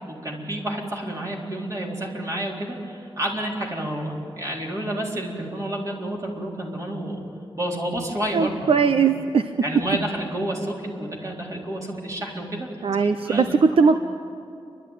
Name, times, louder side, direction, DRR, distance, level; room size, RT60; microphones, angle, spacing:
voice 1, 0.1-7.2 7.5-9.1 9.6-12.7 13.0-13.5, right 1 dB, 35° right, -2 dB, 4.1 m, -30 dB
voice 2, 8.3-9.5 12.8-14.0, right 5 dB, 75° right, 9 dB, 0.7 m, -19 dB
29.5 x 12.5 x 9.2 m, 2.5 s
wide cardioid pair, 110°, 10 cm